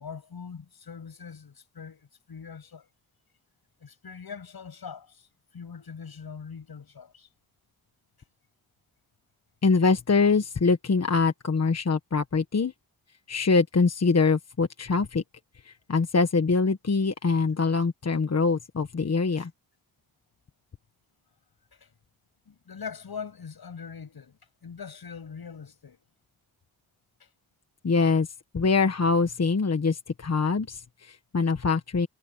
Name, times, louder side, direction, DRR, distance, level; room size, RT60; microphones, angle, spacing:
voice 1, 0.0-2.9 3.8-5.3 5.5-7.3 19.3-19.5 21.7-21.9 22.5-26.0 27.2-27.3, left 6 dB, 75° left, 7.5 m, -42 dB
voice 2, 9.6-12.7 13.3-15.2 15.6-19.5 27.8-28.3 28.5-32.1, left 4 dB, 45° left, 1.4 m, -24 dB
wide cardioid pair, 80°, 37 cm